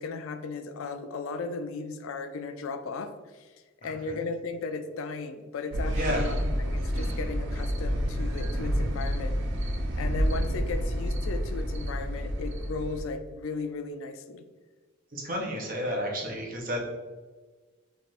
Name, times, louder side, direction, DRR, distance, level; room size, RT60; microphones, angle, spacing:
voice 1, 0.0-3.5 3.8-9.4 10.0-14.4, left 3 dB, 70° left, 9 dB, 0.4 m, -36 dB
voice 2, 3.8-4.2 5.9-6.3 15.1-16.8, equal, 45° right, -1 dB, 0.8 m, -32 dB
sound 1, 5.7-13.0, equal, 60° right, 0.5 m, -29 dB
3.2 x 2.5 x 4.1 m, 1.3 s
head